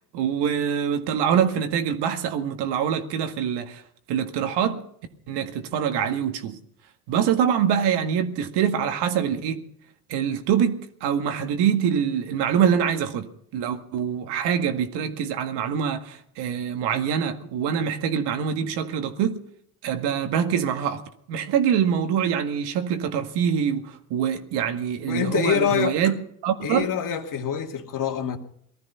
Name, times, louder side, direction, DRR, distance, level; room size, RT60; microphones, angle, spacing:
voice 1, 0.0-3.8 4.1-4.8 5.3-6.6 7.1-9.6 10.1-19.4 19.8-26.9, right 8 dB, 60° right, 2.0 m, -24 dB
voice 2, 25.1-26.1 26.6-28.4, left 8 dB, 45° left, 2.5 m, -25 dB
19.0 x 13.5 x 5.7 m
hypercardioid pair, 80°, 45 cm